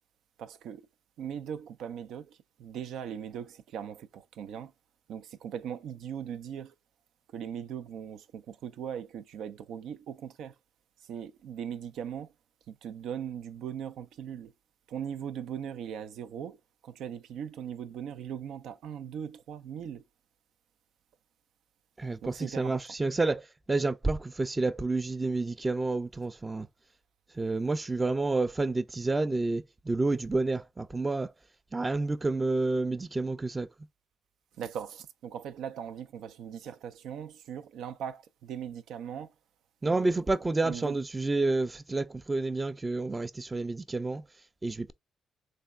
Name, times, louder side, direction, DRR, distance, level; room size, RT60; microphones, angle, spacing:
voice 1, 0.4-0.8 1.2-4.7 5.1-6.7 7.3-10.5 11.1-12.3 12.7-14.5 14.9-16.6 16.8-20.0 22.2-22.8 34.6-39.3 39.8-41.0, right 8 dB, 80° right, 0.5 m, -39 dB
voice 2, 22.0-23.4 23.7-26.7 27.4-31.3 31.7-33.7 39.8-44.2 44.6-44.9, right 3 dB, 20° right, 0.4 m, -29 dB
3.4 x 2.2 x 3.5 m
cardioid pair, 90°, 0 cm